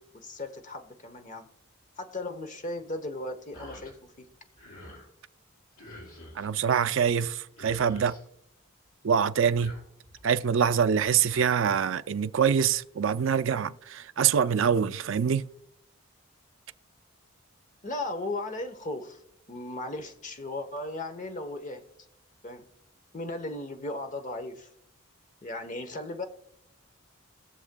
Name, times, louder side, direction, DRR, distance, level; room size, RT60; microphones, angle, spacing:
voice 1, 0.0-1.5 2.0-4.3 17.8-19.2 19.5-21.8 22.4-22.7 23.1-24.7 25.4-26.2, left 2 dB, 35° left, 1.0 m, -36 dB
sound 1, 3.5-3.9 4.3-5.1 5.8-6.5 7.2-7.3 7.5-8.2 9.4-10.2 11.0-11.5, left 1 dB, 85° left, 4.3 m, -48 dB
voice 2, 6.4-8.2 9.0-9.8 10.2-15.5, right 7 dB, 60° right, 0.4 m, -25 dB
20.5 x 7.1 x 2.3 m
head